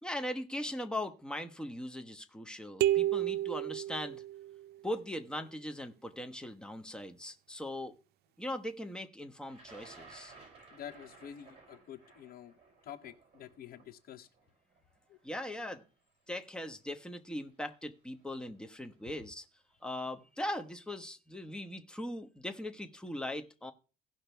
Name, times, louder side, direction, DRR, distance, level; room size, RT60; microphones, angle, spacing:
voice 1, 0.0-4.2 4.8-7.9 8.4-10.3 15.2-15.8 16.3-19.4 19.8-23.7, left 1 dB, 5° left, 1.1 m, -40 dB
sound 1, 2.8-4.7, right 13 dB, 70° right, 0.5 m, -31 dB
Thunder, 9.5-15.5 16.4-16.5 17.6-17.9 18.2-18.7, right 4 dB, 40° right, 6.6 m, -56 dB
voice 2, 10.7-12.5 12.8-14.3 15.1-15.2, left 10 dB, 60° left, 0.9 m, -48 dB
17.0 x 5.8 x 3.4 m
cardioid pair, 110°, 17 cm